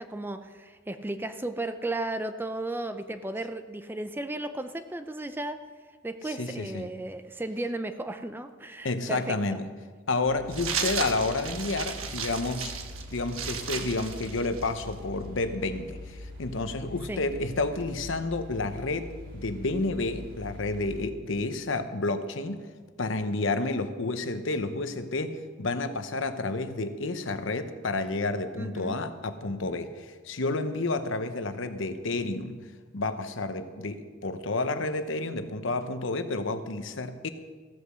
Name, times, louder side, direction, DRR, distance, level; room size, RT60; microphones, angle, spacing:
voice 1, 0.0-5.6 6.0-9.4 17.1-17.2 28.5-29.0, right 2 dB, 10° right, 9 dB, 0.4 m, -34 dB
voice 2, 6.3-6.9 8.8-9.6 10.1-12.7 13.1-22.6 23.0-32.6 32.9-37.3, left 3 dB, 65° left, 10 dB, 0.8 m, -30 dB
sound 1, 10.2-21.0, left 1 dB, 65° right, 3.5 m, -43 dB
sound 2, 10.5-14.9, right 6 dB, 90° right, 1.3 m, -34 dB
15.0 x 8.4 x 6.2 m, 1.5 s
head